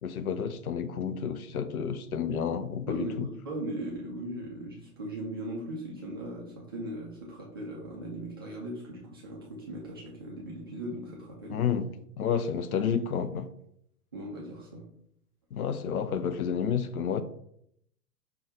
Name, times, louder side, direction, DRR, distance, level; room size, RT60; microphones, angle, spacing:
voice 1, 0.0-3.3 11.5-11.9 12.2-13.5 15.5-17.2, left 7 dB, 65° left, 0.6 m, -30 dB
voice 2, 2.9-11.7 14.1-14.9, right 1 dB, 20° right, 0.3 m, -38 dB
5.8 x 2.2 x 3.8 m
figure-of-eight pair, 105°, 48 cm